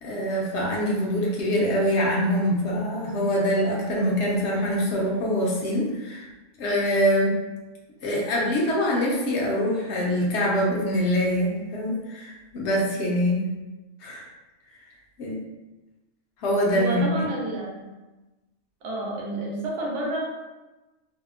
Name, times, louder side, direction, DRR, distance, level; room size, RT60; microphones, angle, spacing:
voice 1, 0.0-6.2 6.6-7.4 8.0-13.5 14.0-14.2 15.2-15.4 16.4-17.2, equal, 65° left, -3 dB, 0.8 m, -24 dB
voice 2, 16.7-17.9 18.8-20.2, right 2 dB, 70° right, -3 dB, 1.0 m, -30 dB
2.7 x 2.0 x 2.4 m, 1.1 s
omnidirectional pair, 1.3 m